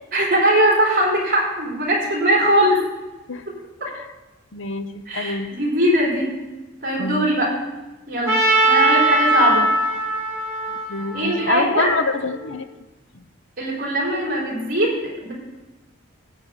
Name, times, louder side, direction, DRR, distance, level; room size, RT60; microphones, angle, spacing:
voice 1, 0.1-2.8 3.5-3.6 3.8-3.9 5.1-6.3 6.8-7.5 8.1-9.7 11.1-11.9 13.6-15.3, right 1 dB, 40° right, -3 dB, 3.9 m, -20 dB
voice 2, 4.5-5.5 7.0-7.3 10.7-12.7, left 3 dB, 60° left, 10 dB, 0.7 m, -26 dB
Trumpet, 8.3-12.3, right 1 dB, 10° right, 2.5 m, -20 dB
15.0 x 8.1 x 3.9 m, 1.1 s
head